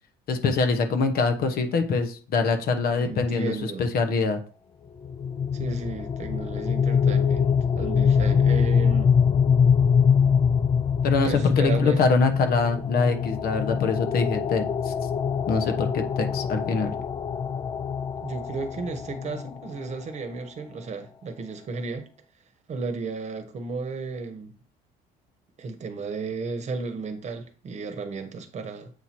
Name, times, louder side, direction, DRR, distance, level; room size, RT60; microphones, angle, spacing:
voice 1, 0.3-4.4 11.0-14.9 15.5-16.9, left 4 dB, 60° left, 1.0 m, -24 dB
voice 2, 2.9-3.9 5.5-9.1 11.2-12.0 18.2-22.1 22.7-24.5 25.6-28.9, right 4 dB, 45° right, 1.1 m, -33 dB
sound 1, 5.0-19.9, left 7 dB, 30° left, 0.4 m, -24 dB
7.9 x 2.8 x 4.4 m
cardioid pair, 110°, 17 cm